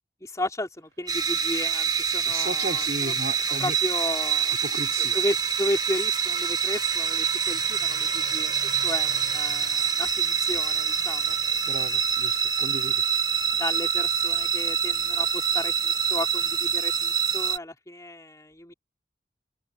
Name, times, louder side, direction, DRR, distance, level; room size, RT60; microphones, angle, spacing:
voice 1, 0.2-3.2 3.6-4.6 5.0-8.5 8.8-11.4 13.5-18.7, left 1 dB, 20° left, 3.4 m, -34 dB
Car passing by, 0.9-16.9, right 4 dB, 75° right, 5.1 m, -51 dB
sound 1, 1.1-17.6, right 7 dB, 20° right, 1.0 m, -26 dB
voice 2, 2.3-3.8 4.6-5.2 11.7-13.0, right 2 dB, 55° right, 3.7 m, -34 dB
open air
head